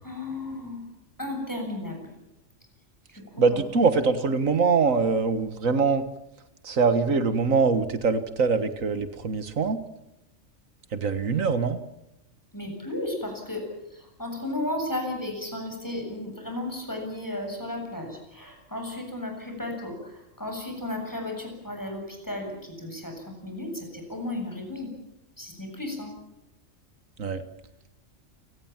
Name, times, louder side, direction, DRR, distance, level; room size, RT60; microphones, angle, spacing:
voice 1, 0.0-0.8 1.2-2.1 3.1-3.6 12.5-24.9 25.4-26.1, left 1 dB, 15° left, 3 dB, 7.7 m, -34 dB
voice 2, 3.4-6.1 6.6-9.8 10.9-11.8 27.2-27.4, right 4 dB, 85° right, 10 dB, 1.9 m, -23 dB
29.5 x 18.5 x 7.4 m, 0.90 s
omnidirectional pair, 1.3 m